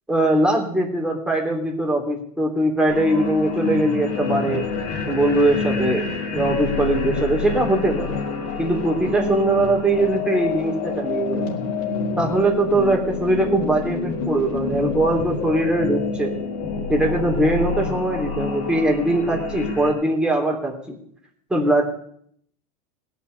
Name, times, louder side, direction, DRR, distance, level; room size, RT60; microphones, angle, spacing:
voice 1, 0.1-4.7 5.1-6.0 6.3-8.1 8.6-11.4 12.2-16.3 16.9-21.0 21.5-21.8, right 1 dB, 5° right, -1 dB, 3.2 m, -21 dB
sound 1, 2.9-19.9, left 4 dB, 55° left, 4.4 m, -27 dB
17.5 x 6.0 x 9.6 m, 0.68 s
supercardioid pair, 135°, 19 cm